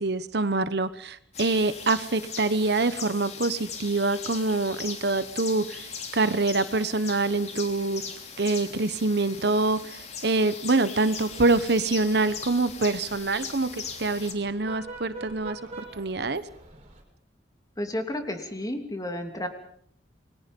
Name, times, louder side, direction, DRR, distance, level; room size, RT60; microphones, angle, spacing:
voice 1, 0.0-8.0 8.4-16.4, right 3 dB, 65° right, 13 dB, 1.1 m, -25 dB
sound 1, 1.3-14.3, left 6 dB, 40° left, 3.1 m, -39 dB
sound 2, 11.0-17.0, right 2 dB, 35° right, 6.0 m, -46 dB
voice 2, 17.8-19.5, left 1 dB, 20° left, 5 dB, 2.9 m, -32 dB
29.0 x 22.0 x 5.4 m, 0.65 s
head